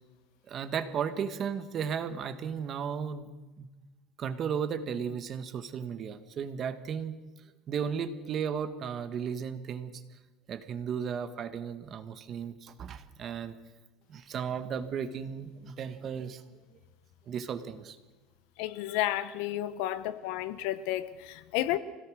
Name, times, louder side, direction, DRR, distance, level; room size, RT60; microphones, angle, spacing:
voice 1, 0.5-3.3 3.6-3.7 4.2-7.1 7.7-9.9 10.5-13.5 14.1-16.4 17.3-18.0 19.8-19.9, right 7 dB, 35° right, 1.6 m, -35 dB
voice 2, 18.6-21.8, left 14 dB, 75° left, 1.2 m, -32 dB
25.0 x 17.5 x 6.4 m
cardioid pair, 150°, 0 cm